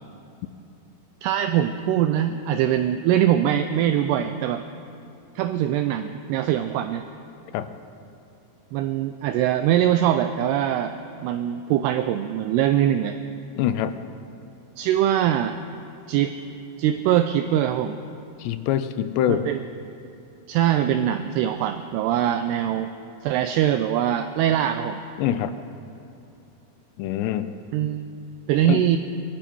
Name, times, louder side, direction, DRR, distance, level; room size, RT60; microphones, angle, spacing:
voice 1, 1.2-4.6 5.4-7.0 8.7-11.0 11.2-13.2 14.8-15.6 16.1-16.3 16.8-18.0 19.3-19.6 20.5-22.9 23.2-25.0 27.7-28.1 28.5-29.0, right 11 dB, 85° right, 9 dB, 2.3 m, -22 dB
voice 2, 13.6-14.0 18.4-19.5 25.2-25.5 27.0-27.5 28.6-28.8, left 11 dB, 80° left, 11 dB, 2.6 m, -24 dB
22.0 x 14.0 x 4.6 m, 2.9 s
omnidirectional pair, 5.2 m